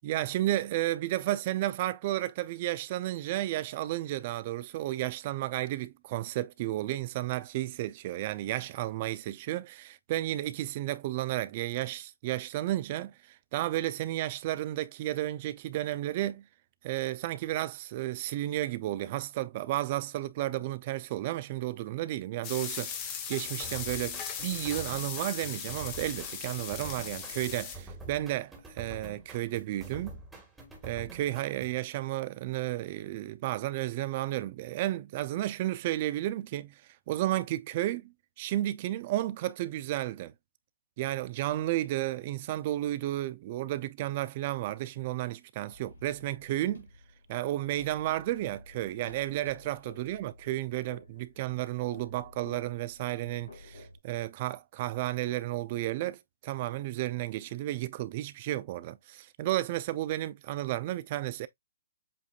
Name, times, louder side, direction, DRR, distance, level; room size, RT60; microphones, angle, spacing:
voice 1, 0.0-16.4 16.8-30.1 30.8-36.8 37.1-40.3 41.0-46.9 47.3-61.5, right 15 dB, 40° right, 0.4 m, -32 dB
sound 1, 22.4-27.8, left 7 dB, 30° left, 1.0 m, -38 dB
sound 2, 23.6-31.8, right 3 dB, 10° right, 1.5 m, -47 dB
sound 3, 45.7-54.0, left 2 dB, 90° left, 3.3 m, -52 dB
7.6 x 2.6 x 2.4 m
hypercardioid pair, 140°, 0 cm